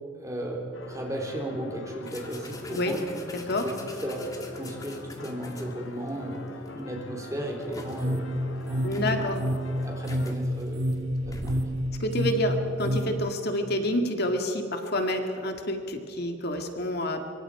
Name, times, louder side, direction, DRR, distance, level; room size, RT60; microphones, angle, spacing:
voice 1, 0.1-3.1 3.4-4.3 4.6-6.4 6.7-8.3 8.6-9.3 9.8-10.9 11.2-11.6, right 1 dB, 15° right, 0 dB, 3.6 m, -35 dB
sound 1, 0.7-10.4, left 2 dB, 80° left, 1.6 m, -44 dB
sound 2, 2.1-6.1 6.7-6.8 7.2-8.1 8.6-8.7 8.9-11.8, left 1 dB, 20° left, 2.0 m, -44 dB
sound 3, 7.9-13.1, equal, 75° right, 1.6 m, -29 dB
voice 2, 8.8-9.4 12.0-17.3, left 1 dB, 55° left, 4 dB, 2.0 m, -28 dB
24.5 x 24.5 x 4.9 m, 2.4 s
head